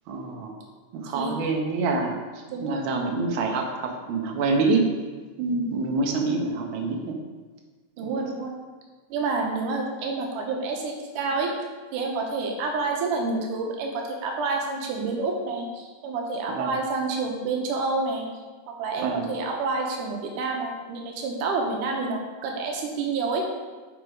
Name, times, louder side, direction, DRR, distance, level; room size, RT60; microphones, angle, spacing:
voice 1, 0.1-0.6 0.9-4.8 5.7-7.2 16.6-16.8 19.0-19.3, right 3 dB, 60° right, 2 dB, 1.3 m, -26 dB
voice 2, 2.5-2.9 5.4-6.0 8.0-8.6 9.1-11.5 11.9-18.3 18.7-23.5, right 3 dB, 90° right, 1 dB, 2.6 m, -28 dB
7.9 x 5.9 x 4.7 m, 1.4 s
omnidirectional pair, 3.6 m